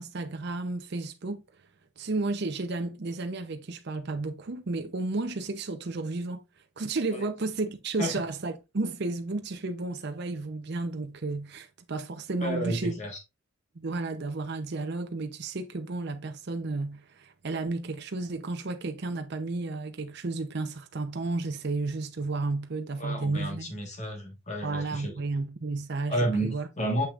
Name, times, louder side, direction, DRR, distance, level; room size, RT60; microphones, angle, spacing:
voice 1, 0.0-1.4 2.0-6.4 6.8-13.0 13.8-23.7 24.6-26.7, right 3 dB, 50° right, 0.7 m, -32 dB
voice 2, 12.4-13.2 23.0-25.1 26.1-27.1, right 1 dB, 35° left, 1.4 m, -31 dB
6.8 x 5.8 x 2.4 m
head